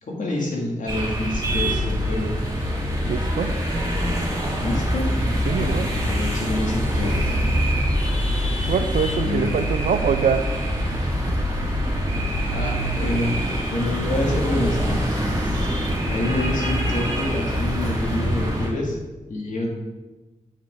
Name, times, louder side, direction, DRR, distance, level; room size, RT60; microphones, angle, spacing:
voice 1, 0.0-2.4 4.6-5.1 5.6-7.5 9.2-9.6 12.5-13.4 13.7-15.0 15.3-15.7 16.1-19.0 19.3-19.7, left 1 dB, 75° left, -2 dB, 2.3 m, -27 dB
sound 1, 0.9-18.7, equal, 25° right, 2.3 m, -24 dB
voice 2, 3.0-3.5 5.5-5.9 8.7-10.4 11.3-11.4, right 7 dB, 90° right, 11 dB, 0.5 m, -24 dB
9.2 x 7.2 x 3.7 m, 1.2 s
cardioid pair, 55°, 13 cm